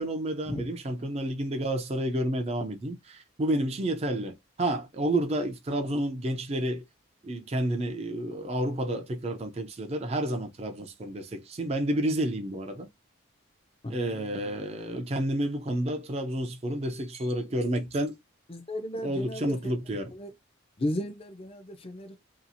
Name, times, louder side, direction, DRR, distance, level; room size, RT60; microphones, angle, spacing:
voice 1, 0.0-6.8 7.2-12.9 13.9-18.2 19.0-20.1, right 1 dB, 30° right, 0.4 m, -30 dB
voice 2, 13.8-14.2 18.5-19.7 20.1-20.3 20.8-22.2, left 1 dB, 25° left, 0.5 m, -35 dB
2.8 x 2.4 x 2.6 m
head